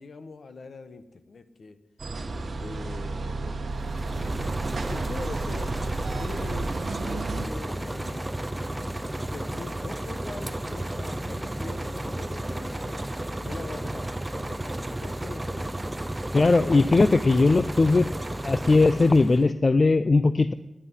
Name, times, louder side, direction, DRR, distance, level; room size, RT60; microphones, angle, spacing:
voice 1, 0.0-1.8 2.6-3.6 4.6-5.7 6.1-6.7 7.0-8.3 9.2-13.1 13.4-15.9, left 4 dB, 55° left, 10 dB, 1.1 m, -42 dB
sound 1, 2.0-7.5, right 3 dB, 50° right, 1.2 m, -32 dB
sound 2, 3.7-19.5, right 1 dB, 10° right, 0.7 m, -33 dB
voice 2, 16.3-18.1 18.4-20.5, left 3 dB, 30° left, 12 dB, 0.4 m, -19 dB
10.0 x 9.6 x 9.9 m, 0.98 s
wide cardioid pair, 150°, 0 cm